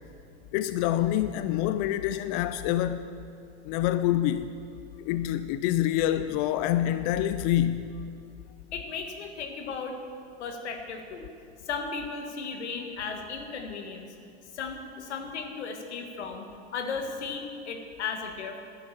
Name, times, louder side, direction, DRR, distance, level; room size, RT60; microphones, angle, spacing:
voice 1, 0.5-3.1 3.6-4.5 5.0-8.0, left 12 dB, 45° left, 0.5 m, -26 dB
voice 2, 8.7-10.0 10.4-11.3 11.6-14.1 14.5-16.4 16.7-18.6, left 5 dB, 85° left, 1.7 m, -35 dB
11.0 x 9.3 x 7.2 m
hypercardioid pair, 110°, 33 cm